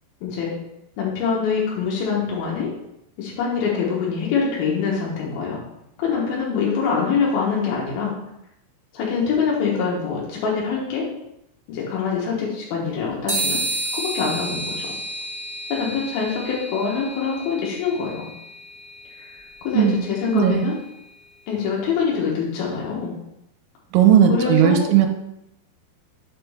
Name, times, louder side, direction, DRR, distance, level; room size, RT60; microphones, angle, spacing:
voice 1, 0.2-0.5 1.0-2.7 3.2-5.6 6.0-8.1 8.9-11.1 11.7-13.6 13.9-14.9 15.7-18.3 19.2-19.4 19.6-20.8 21.5-23.1 24.3-24.9, left 6 dB, 75° left, -5 dB, 2.3 m, -24 dB
sound 1, 13.3-20.9, right 1 dB, 25° right, 0.8 m, -31 dB
voice 2, 20.3-20.6 23.9-25.1, right 9 dB, 85° right, 5 dB, 3.3 m, -16 dB
7.0 x 5.9 x 3.4 m, 0.83 s
omnidirectional pair, 6.0 m